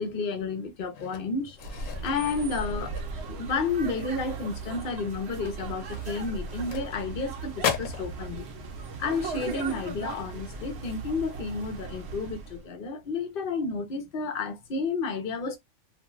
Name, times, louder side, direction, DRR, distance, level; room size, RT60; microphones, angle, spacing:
voice 1, 0.0-1.6 2.0-2.9 3.3-8.5 9.0-15.6, left 4 dB, 50° left, 0.8 m, -31 dB
sound 1, 0.9-3.6 3.9-4.2 4.6-4.7 5.3-7.3 7.6-8.1, left 8 dB, 85° left, 1.0 m, -36 dB
sound 2, 1.5-12.7, right 4 dB, 65° right, 0.8 m, -37 dB
2.6 x 2.3 x 3.0 m
omnidirectional pair, 1.3 m